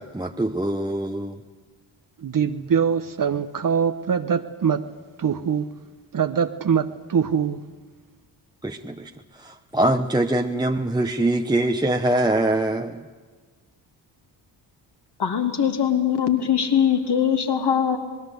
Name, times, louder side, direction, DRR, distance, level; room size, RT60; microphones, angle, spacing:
voice 1, 0.0-1.4 8.6-13.1, right 1 dB, 10° right, 4 dB, 1.0 m, -24 dB
voice 2, 2.2-4.9 5.2-5.7 6.1-7.6, right 7 dB, 40° right, 9 dB, 1.1 m, -23 dB
voice 3, 15.2-18.0, left 8 dB, 55° left, 5 dB, 2.9 m, -21 dB
26.0 x 19.0 x 8.2 m, 1.5 s
supercardioid pair, 50°, 49 cm